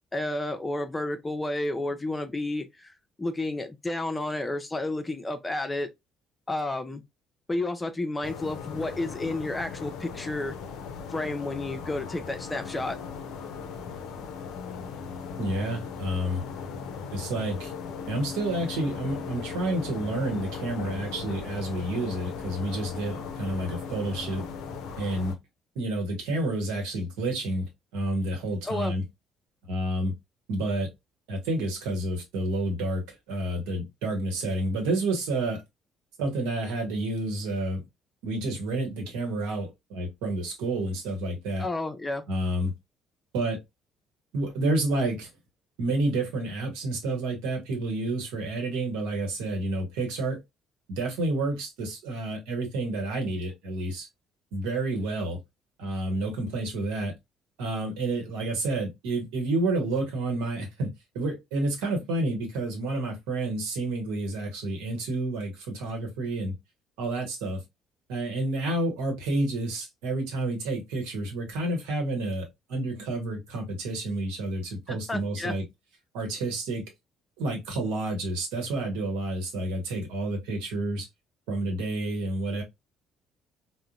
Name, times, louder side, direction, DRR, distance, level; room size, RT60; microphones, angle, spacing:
voice 1, 0.1-5.9 6.5-7.0 7.5-10.6 11.1-13.0 28.6-28.9 41.6-42.2 74.9-75.5, left 2 dB, 20° left, 0.6 m, -31 dB
sound 1, 8.2-25.3, left 6 dB, 65° left, 0.5 m, -38 dB
voice 2, 15.4-16.4 17.1-17.7 18.1-24.5 25.0-25.4 25.7-29.0 29.7-30.2 30.5-30.9 31.3-35.6 36.2-37.8 38.2-41.7 42.3-42.7 43.3-43.6 44.3-45.3 45.8-50.4 50.9-54.1 54.5-55.4 55.8-57.1 57.6-66.5 67.0-67.6 68.1-75.6 76.1-76.9 77.4-81.1 81.5-82.6, right 2 dB, 70° right, 1.0 m, -29 dB
3.7 x 2.1 x 2.3 m
figure-of-eight pair, 50°, 0 cm